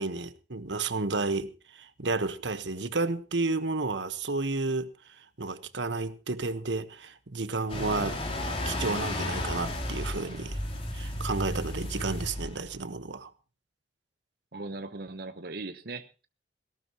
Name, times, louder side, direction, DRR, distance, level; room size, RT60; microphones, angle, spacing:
voice 1, 0.0-4.9 5.4-8.2 8.6-10.6 10.9-13.3, right 3 dB, 90° right, 1.3 m, -31 dB
sound 1, 7.7-12.8, left 1 dB, 30° left, 3.5 m, -33 dB
voice 2, 14.5-16.3, right 3 dB, 60° right, 1.0 m, -39 dB
18.0 x 17.5 x 3.0 m
head